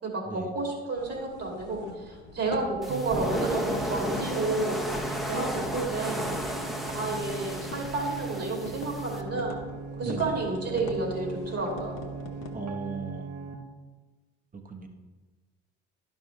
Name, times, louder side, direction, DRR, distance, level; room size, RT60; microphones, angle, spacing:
voice 1, 0.0-5.0 5.3-6.2 6.9-9.6 10.0-12.0, right 3 dB, 45° right, 0 dB, 2.6 m, -31 dB
sound 1, 0.9-12.5, left 3 dB, 70° left, 1.0 m, -45 dB
sound 2, 2.8-9.2, equal, ahead, 1.0 m, -34 dB
sound 3, 2.9-13.5, right 5 dB, 60° right, 1.0 m, -39 dB
voice 2, 12.5-13.3 14.7-14.9, right 3 dB, 25° right, 4 dB, 1.2 m, -36 dB
11.5 x 5.5 x 3.2 m, 1.3 s
hypercardioid pair, 55°, 33 cm